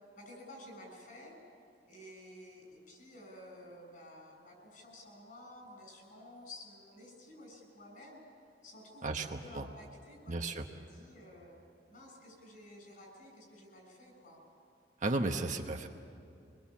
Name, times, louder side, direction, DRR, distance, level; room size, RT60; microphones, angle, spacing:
voice 1, 0.2-1.4 1.9-8.2 8.6-9.1 9.4-10.3 10.8-11.6 11.9-14.4, left 1 dB, 55° left, 1 dB, 6.8 m, -52 dB
voice 2, 9.0-9.7 10.3-10.6 15.0-15.9, right 2 dB, 45° right, 3 dB, 1.1 m, -34 dB
25.0 x 21.5 x 7.3 m, 2.4 s
head